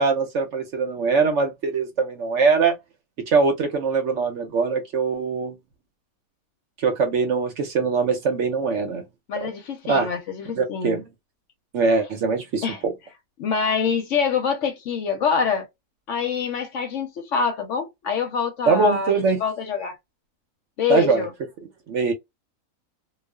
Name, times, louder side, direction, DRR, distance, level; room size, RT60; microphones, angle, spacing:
voice 1, 0.0-2.7 3.2-5.6 6.8-9.0 9.4-9.5 9.9-10.1 10.6-11.1 11.7-12.9 18.7-19.4 20.9-21.3 21.9-22.1, right 4 dB, 65° right, 0.8 m, -22 dB
voice 2, 9.3-11.0 12.6-12.8 13.4-15.7 16.1-20.0 20.8-21.3, left 6 dB, 65° left, 0.9 m, -25 dB
2.4 x 2.3 x 2.2 m
omnidirectional pair, 1.5 m